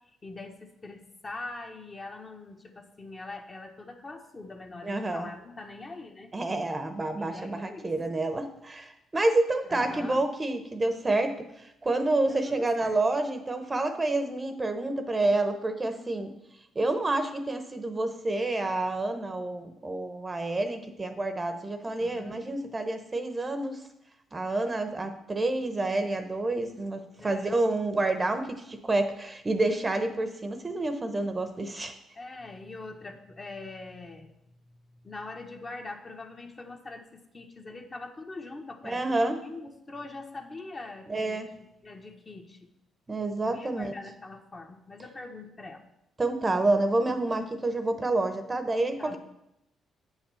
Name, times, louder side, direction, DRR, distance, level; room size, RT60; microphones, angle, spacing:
voice 1, 0.2-6.3 7.2-7.9 9.7-10.2 12.3-13.0 22.0-22.5 27.2-27.5 32.1-34.6 34.9-37.0 37.3-42.7 43.4-45.8 49.0-49.2, left 3 dB, 30° left, 3 dB, 1.3 m, -43 dB
voice 2, 4.8-5.3 6.3-11.4 11.8-16.3 16.7-23.8 24.3-31.9 38.8-39.4 41.1-41.5 43.1-43.9 46.2-49.2, right 2 dB, 25° right, 8 dB, 0.9 m, -28 dB
8.6 x 5.5 x 7.0 m, 0.83 s
cardioid pair, 90°, 0 cm